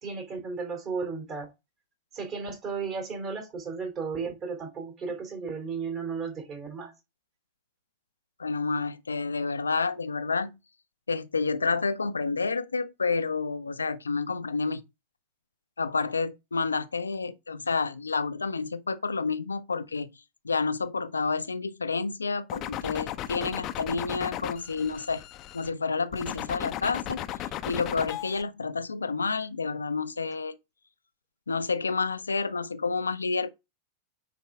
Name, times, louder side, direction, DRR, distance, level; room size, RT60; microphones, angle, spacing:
voice 1, 0.0-1.5 2.1-6.9, right 5 dB, 35° right, 3.0 m, -34 dB
voice 2, 8.4-10.5 11.1-14.8 15.8-20.1 20.4-25.2 25.5-27.3 27.6-30.6 31.5-33.5, left 4 dB, 75° left, 0.6 m, -29 dB
sound 1, 22.5-25.7 26.1-28.4, left 13 dB, 35° left, 0.6 m, -35 dB
9.3 x 3.7 x 3.4 m
figure-of-eight pair, 90°, 0 cm